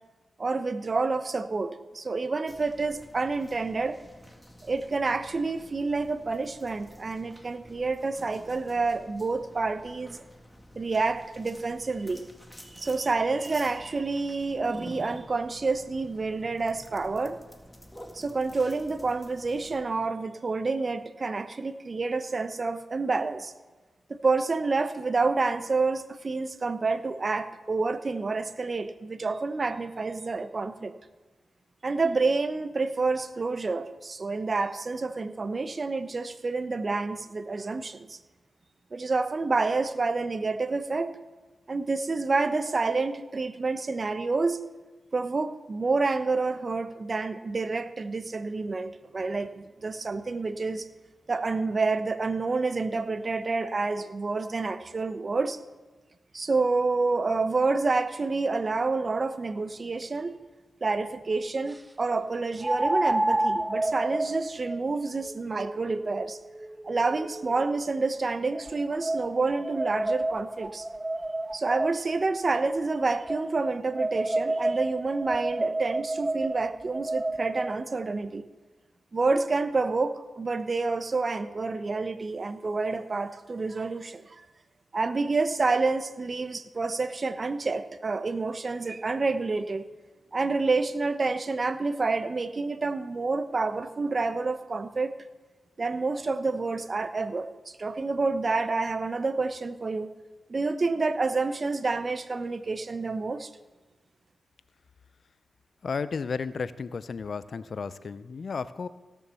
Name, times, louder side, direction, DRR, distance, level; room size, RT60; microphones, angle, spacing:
voice 1, 0.4-4.0 4.6-10.2 10.8-12.2 12.7-17.4 18.1-23.5 24.1-30.9 31.8-38.2 38.9-41.2 41.7-44.6 45.1-50.9 51.3-55.6 56.3-60.4 60.8-66.4 66.8-70.9 71.5-78.4 79.1-84.2 84.9-89.9 90.3-95.1 95.8-100.1 100.5-103.5, right 3 dB, 45° right, 11 dB, 0.8 m, -28 dB
sound 1, 2.5-19.8, equal, 10° left, 2.1 m, -50 dB
sound 2, 60.0-60.1 62.6-67.8 68.5-72.2 73.3-77.8, right 2 dB, 20° right, 0.4 m, -30 dB
voice 2, 105.8-108.9, left 5 dB, 65° left, 15 dB, 0.5 m, -33 dB
16.5 x 7.1 x 6.9 m, 1.2 s
cardioid pair, 50°, 0 cm